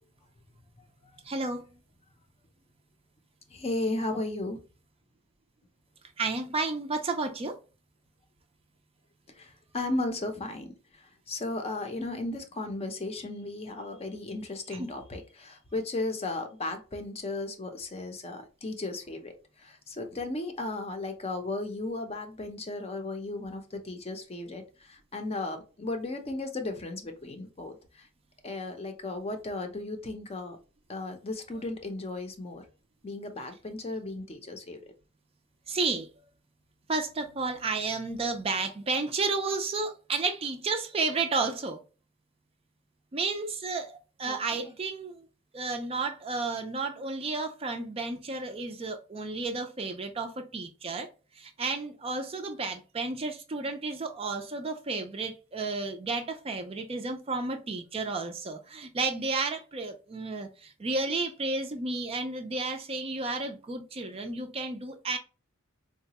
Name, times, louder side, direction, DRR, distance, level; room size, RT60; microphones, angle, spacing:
voice 1, 1.2-1.7 6.2-7.6 14.7-14.9 35.7-36.3 36.9-41.8 43.1-45.3 45.5-51.1 51.3-65.2, right 3 dB, 30° right, 0.4 m, -32 dB
voice 2, 3.5-4.6 9.4-10.7 10.9-19.3 19.6-28.1 28.4-30.6 30.9-32.6 33.0-34.8 44.3-44.4 44.6-44.7, left 2 dB, 30° left, 0.6 m, -35 dB
3.9 x 2.1 x 2.8 m
head